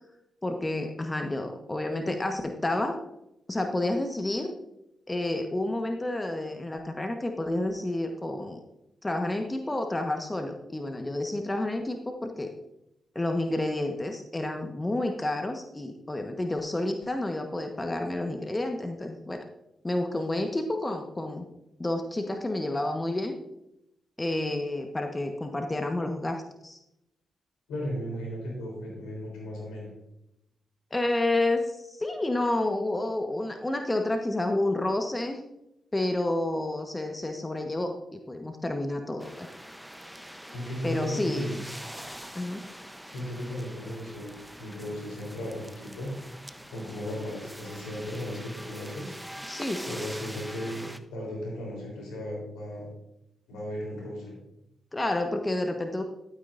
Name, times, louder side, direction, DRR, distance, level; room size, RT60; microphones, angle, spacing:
voice 1, 0.4-3.0 3.5-4.5 5.1-8.6 9.0-12.5 13.1-19.5 19.8-21.5 21.8-23.4 24.2-26.8 30.9-35.4 35.9-39.5 40.8-41.5 42.3-42.6 49.5-50.0 54.9-56.0, left 1 dB, 25° left, 4 dB, 1.2 m, -30 dB
voice 2, 27.7-29.9 40.5-41.6 43.1-46.3 46.7-49.2 49.9-52.9 53.5-54.4, equal, 85° left, -2 dB, 3.7 m, -36 dB
sound 1, 39.2-51.0, equal, 5° right, 0.8 m, -44 dB
12.0 x 9.4 x 2.6 m, 0.84 s
hypercardioid pair, 40°, 0 cm